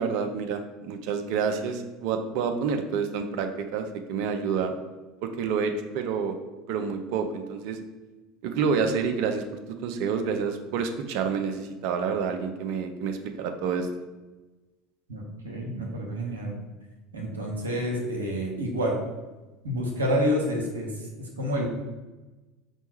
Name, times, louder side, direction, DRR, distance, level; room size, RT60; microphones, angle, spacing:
voice 1, 0.0-4.8 5.2-6.4 6.7-7.8 8.4-13.9, right 6 dB, 60° right, 7 dB, 0.4 m, -28 dB
voice 2, 15.1-16.6 17.1-19.0 19.6-21.1 21.4-21.7, equal, 80° right, -1 dB, 0.7 m, -28 dB
5.2 x 2.2 x 3.0 m, 1.2 s
figure-of-eight pair, 70°, 0 cm